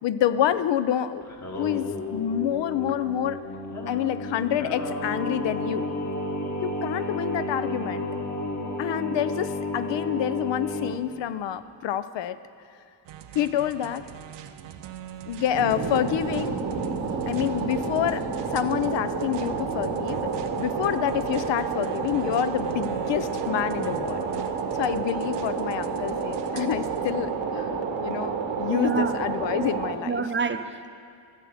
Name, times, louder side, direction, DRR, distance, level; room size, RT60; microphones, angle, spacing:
voice 1, 0.0-1.3 1.6-3.4 3.9-5.9 6.6-8.1 8.8-12.4 13.3-14.0 15.2-16.6 17.3-18.3 18.5-20.3 20.6-24.2 24.8-30.2, left 10 dB, 75° left, 13 dB, 0.6 m, -27 dB
Singing, 1.2-11.0, left 1 dB, 40° left, 1.6 m, -32 dB
sound 1, 13.0-27.1, right 10 dB, 70° right, 0.7 m, -43 dB
sound 2, 15.5-29.9, right 5 dB, 85° right, 1.4 m, -29 dB
voice 2, 28.7-29.1 29.6-29.7 30.1-30.9, right 5 dB, 25° right, 9 dB, 0.6 m, -27 dB
14.0 x 6.8 x 7.9 m, 2.3 s
cardioid pair, 85°, 44 cm